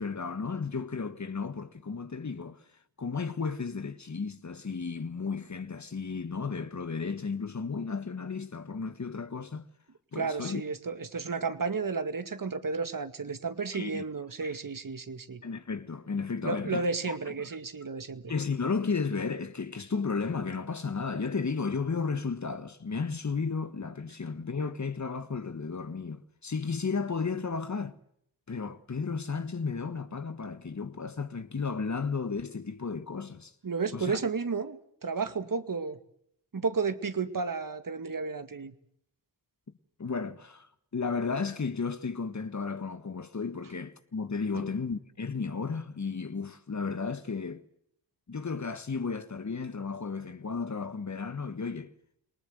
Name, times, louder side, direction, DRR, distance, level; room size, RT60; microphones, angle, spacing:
voice 1, 0.0-2.6 3.0-9.7 10.1-10.6 13.7-14.0 14.4-14.5 15.4-17.3 18.3-28.0 28.5-33.5 33.9-34.2 40.0-47.6 48.3-51.9, left 5 dB, 40° left, 1.7 m, -33 dB
voice 2, 10.1-15.4 16.4-18.3 33.6-36.0 36.5-38.7, right 4 dB, 45° right, 2.2 m, -32 dB
28.0 x 19.0 x 8.0 m
supercardioid pair, 45°, 45 cm